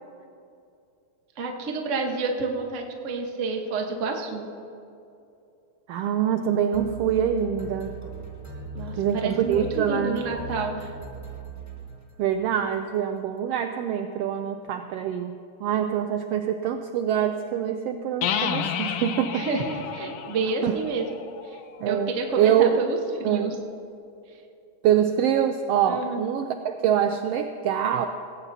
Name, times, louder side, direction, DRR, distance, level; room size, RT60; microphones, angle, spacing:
voice 1, 1.4-4.5 8.7-10.9 19.3-21.0 21.5-21.6 21.8-23.5 25.9-26.3, right 3 dB, 60° right, 2 dB, 0.7 m, -29 dB
voice 2, 5.9-7.9 9.0-10.2 12.2-19.5 20.6-20.8 21.8-22.8 23.2-23.5 24.8-28.1, right 9 dB, 90° right, 6 dB, 1.3 m, -25 dB
sound 1, 6.7-12.4, right 3 dB, 20° right, 0.4 m, -39 dB
sound 2, 18.2-21.9, left 8 dB, 70° left, 1.5 m, -31 dB
19.0 x 16.0 x 2.8 m, 2.6 s
omnidirectional pair, 3.4 m